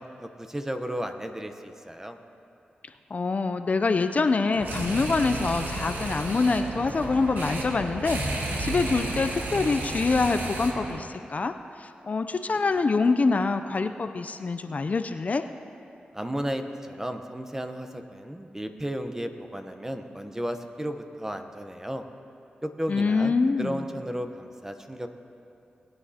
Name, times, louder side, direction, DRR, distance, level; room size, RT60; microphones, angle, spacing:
voice 1, 0.0-2.2 16.1-22.0 22.6-25.1, equal, 15° right, 6 dB, 0.8 m, -34 dB
voice 2, 3.1-15.4 22.9-23.9, left 4 dB, 45° left, 8 dB, 0.4 m, -25 dB
sound 1, 4.5-11.0, right 2 dB, 75° right, 1.4 m, -32 dB
19.5 x 9.7 x 2.8 m, 2.6 s
cardioid pair, 55°, 3 cm